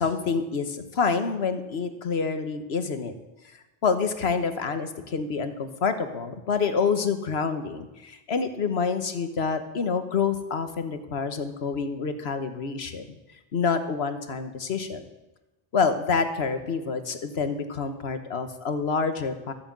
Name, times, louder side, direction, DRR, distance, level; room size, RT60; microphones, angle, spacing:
voice 1, 0.0-3.1 3.8-13.1 13.5-15.0 15.7-19.5, left 5 dB, 75° left, 8 dB, 1.4 m, -27 dB
13.5 x 9.1 x 7.5 m, 1.0 s
omnidirectional pair, 1.1 m